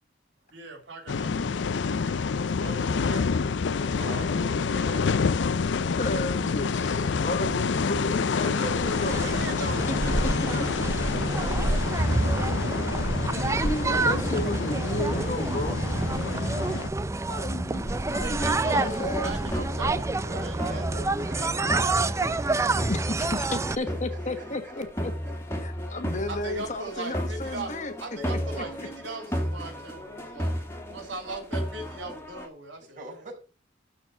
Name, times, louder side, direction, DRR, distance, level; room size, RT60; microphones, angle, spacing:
voice 1, 0.5-1.6 1.9-4.1 8.4-13.1 18.2-21.0 21.3-21.5 26.3-27.7 28.0-33.3, right 2 dB, 70° right, 3.4 m, -40 dB
sound 1, 1.1-16.9, left 5 dB, 65° left, 0.5 m, -28 dB
voice 2, 3.8-5.8 16.1-16.4 20.3-22.9 23.8-26.2 32.9-33.3, right 1 dB, 45° right, 5.1 m, -43 dB
voice 3, 6.0-9.3 9.5-10.0 10.2-10.7 13.6-15.8 17.3-20.0 22.9-25.1 25.6-27.9 28.6-28.7, left 2 dB, 40° left, 1.3 m, -33 dB
sound 2, 8.7-23.8, right 2 dB, 15° right, 0.4 m, -28 dB
sound 3, 17.5-32.5, equal, 15° left, 1.9 m, -35 dB
13.0 x 4.4 x 6.8 m
head